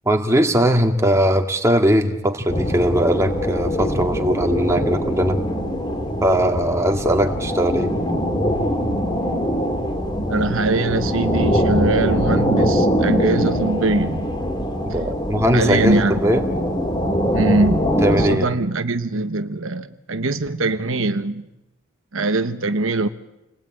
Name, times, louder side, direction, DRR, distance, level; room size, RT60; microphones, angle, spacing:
voice 1, 0.1-5.4 6.2-7.9 14.8-16.4 18.0-18.5, equal, 15° right, 2.0 m, -19 dB
sound 1, 2.5-18.3, equal, 20° left, 3.3 m, -22 dB
voice 2, 10.3-14.3 15.5-16.2 17.3-21.4 22.1-23.1, right 2 dB, 70° right, 1.1 m, -22 dB
28.5 x 20.0 x 9.1 m
head